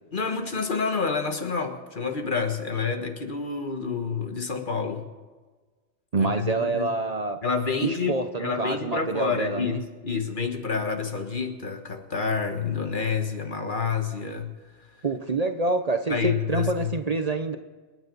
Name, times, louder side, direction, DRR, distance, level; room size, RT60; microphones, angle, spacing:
voice 1, 0.1-5.1 6.2-6.9 7.4-14.5 16.1-16.9, left 5 dB, 50° left, 5 dB, 1.5 m, -28 dB
voice 2, 6.1-7.4 7.8-9.8 15.0-17.6, right 3 dB, 40° right, 8 dB, 0.8 m, -27 dB
27.5 x 9.4 x 5.4 m, 1.4 s
omnidirectional pair, 1.1 m